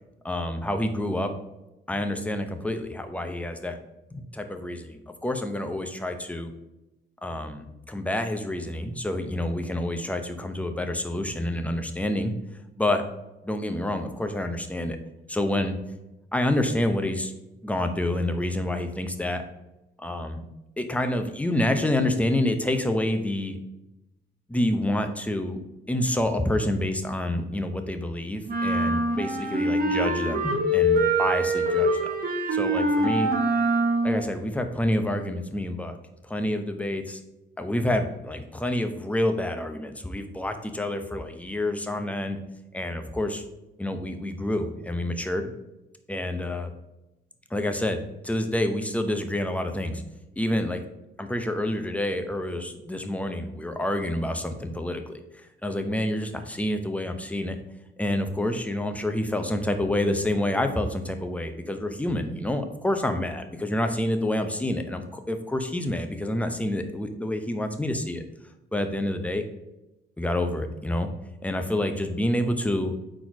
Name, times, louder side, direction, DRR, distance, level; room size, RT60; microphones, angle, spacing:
voice 1, 0.2-1.3 1.9-3.8 4.1-6.5 7.2-12.3 12.8-13.0 13.4-15.0 15.3-15.8 16.3-17.3 17.6-19.4 20.0-20.4 20.8-23.6 24.5-25.6 25.9-32.2 32.5-33.3 34.0-36.0 36.2-37.2 37.6-42.4 42.7-43.4 43.8-45.5 46.1-46.7 47.5-50.0 50.4-50.8 51.2-55.2 55.6-57.6 58.0-68.2 68.7-69.4 70.2-71.1 71.4-72.9, left 1 dB, 5° left, 7 dB, 0.7 m, -28 dB
sound 1, 28.5-34.2, right 1 dB, 45° right, 1.2 m, -24 dB
4.4 x 4.2 x 5.0 m, 0.95 s
cardioid pair, 90°, 20 cm